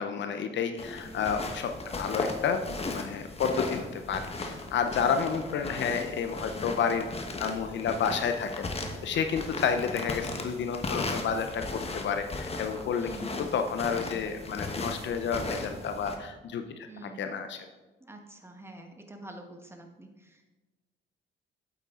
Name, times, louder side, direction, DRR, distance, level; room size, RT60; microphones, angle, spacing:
voice 1, 0.0-7.1 7.4-8.7 9.0-16.6 17.0-17.7, left 6 dB, 65° left, 7 dB, 0.7 m, -30 dB
sound 1, 0.8-16.2, left 3 dB, 30° left, 1.2 m, -37 dB
voice 2, 1.0-1.5 4.9-5.1 13.0-14.2 16.8-17.3 18.0-20.5, right 1 dB, 10° right, 3 dB, 1.3 m, -47 dB
8.3 x 8.2 x 3.7 m, 1.1 s
cardioid pair, 90°, 20 cm